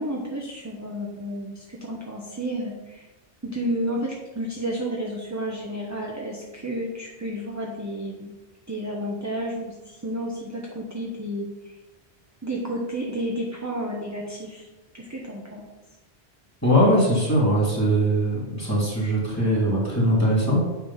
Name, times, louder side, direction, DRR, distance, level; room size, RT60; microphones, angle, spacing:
voice 1, 0.0-3.1 3.4-8.3 8.7-11.8 12.4-14.7 14.9-15.7, equal, 15° right, -2 dB, 0.8 m, -31 dB
voice 2, 16.6-20.7, equal, 15° left, -6 dB, 2.7 m, -21 dB
8.9 x 3.3 x 5.6 m, 1.1 s
omnidirectional pair, 1.1 m